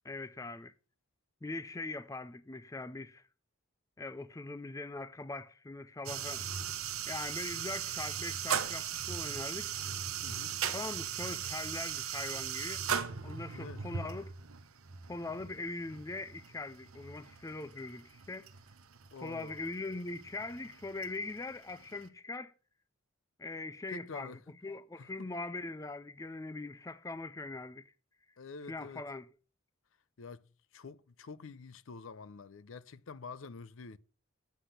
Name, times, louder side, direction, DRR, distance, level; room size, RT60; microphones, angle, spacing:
voice 1, 0.0-0.7 1.4-3.2 4.0-6.5 7.1-9.8 10.7-12.9 13.2-14.3 15.1-18.5 19.2-22.5 23.4-24.3 24.6-27.9 28.7-29.3, left 2 dB, 15° left, 0.4 m, -41 dB
sound 1, 6.1-22.1, right 8 dB, 75° right, 0.9 m, -39 dB
voice 2, 10.2-10.6 13.5-13.8 19.1-19.6 23.9-24.4 25.0-25.3 28.4-29.0 30.2-30.5 30.7-34.0, left 4 dB, 65° left, 0.5 m, -47 dB
8.3 x 5.8 x 8.0 m
head